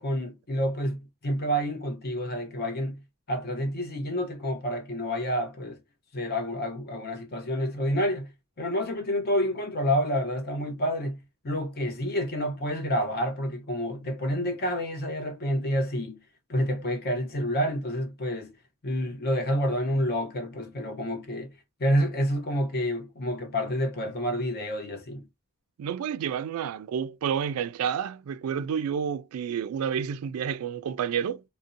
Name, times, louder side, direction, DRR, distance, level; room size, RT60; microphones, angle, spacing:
voice 1, 0.0-3.0 3.3-5.8 6.1-8.3 8.6-11.2 11.4-16.2 16.5-18.6 18.8-21.5 21.8-25.2, equal, 45° left, 0.7 m, -28 dB
voice 2, 25.8-31.4, right 8 dB, 70° right, 0.3 m, -30 dB
2.6 x 2.1 x 2.5 m
head